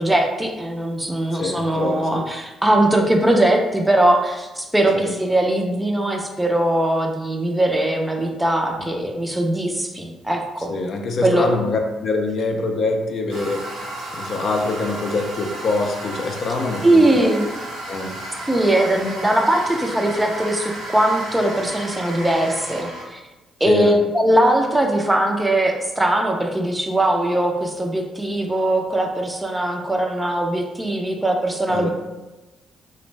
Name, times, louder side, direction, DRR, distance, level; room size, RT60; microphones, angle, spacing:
voice 1, 0.0-10.7 11.2-11.5 16.8-17.5 18.5-23.2 23.6-31.9, right 1 dB, 10° right, 2 dB, 0.4 m, -20 dB
voice 2, 1.4-2.2 4.9-5.1 10.7-13.7 14.1-17.3 17.9-18.2 23.6-24.0 31.7-31.9, left 3 dB, 60° left, 3 dB, 0.3 m, -24 dB
Toilet flush, 13.3-23.0, right 1 dB, 90° right, 0.7 m, -33 dB
2.5 x 2.0 x 3.1 m, 1.1 s
cardioid pair, 90°, 0 cm